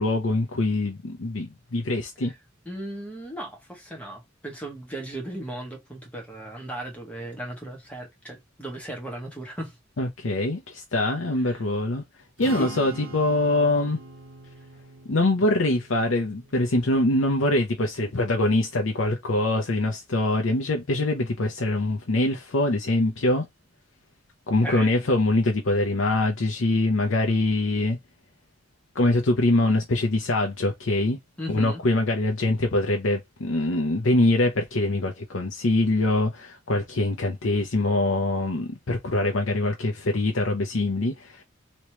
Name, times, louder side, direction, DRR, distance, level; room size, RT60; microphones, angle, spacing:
voice 1, 0.0-2.3 10.0-12.0 12.4-14.0 15.1-23.5 24.5-28.0 28.9-31.2 31.5-41.4, left 2 dB, 75° left, 0.7 m, -24 dB
voice 2, 2.6-9.8 11.3-11.6 12.5-12.7 24.6-24.9 31.4-31.8, right 1 dB, 5° left, 1.4 m, -36 dB
Strum, 12.4-18.7, right 2 dB, 75° right, 1.1 m, -43 dB
3.1 x 3.0 x 3.0 m
head